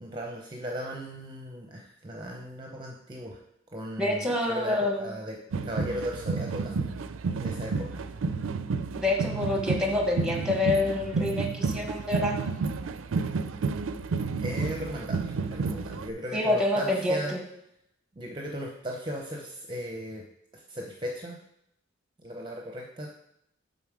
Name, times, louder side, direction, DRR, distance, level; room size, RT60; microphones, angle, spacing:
voice 1, 0.0-3.4 3.7-5.4 5.6-7.0 7.3-7.9 14.4-17.3 18.2-20.2 20.5-21.4 22.2-23.1, equal, 25° right, 0 dB, 0.6 m, -37 dB
voice 2, 4.0-5.1 8.9-12.5 16.3-17.4, left 2 dB, 5° right, 2 dB, 1.0 m, -27 dB
sound 1, 5.5-16.1, right 4 dB, 85° right, 0.4 m, -31 dB
6.9 x 4.1 x 4.8 m, 0.78 s
head